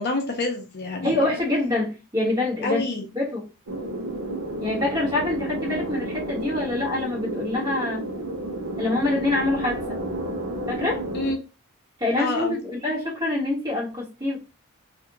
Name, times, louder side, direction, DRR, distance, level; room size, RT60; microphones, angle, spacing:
voice 1, 0.0-1.4 2.6-3.1 11.1-11.4 12.2-12.6, left 3 dB, 50° left, 2 dB, 0.5 m, -27 dB
voice 2, 1.0-2.8 3.1-3.4 4.6-8.0 8.8-10.0 10.7-11.0 12.0-14.4, left 2 dB, 20° right, -5 dB, 1.3 m, -25 dB
sound 1, 3.7-11.3, right 1 dB, 90° right, 0.8 m, -31 dB
2.5 x 2.4 x 2.8 m, 0.31 s
head